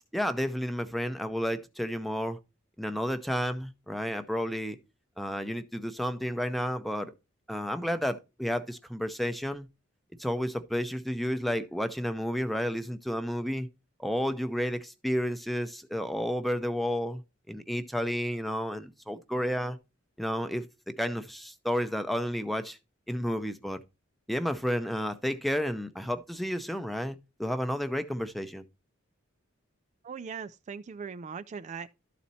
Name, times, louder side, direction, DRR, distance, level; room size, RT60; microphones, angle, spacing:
voice 1, 0.1-2.4 2.8-4.8 5.2-7.1 7.5-9.7 10.2-13.7 14.0-17.2 17.5-19.8 20.2-22.8 23.1-23.8 24.3-28.6, equal, ahead, 0.6 m, -31 dB
voice 2, 30.0-31.9, right 6 dB, 35° right, 0.3 m, -39 dB
12.5 x 4.2 x 4.1 m
head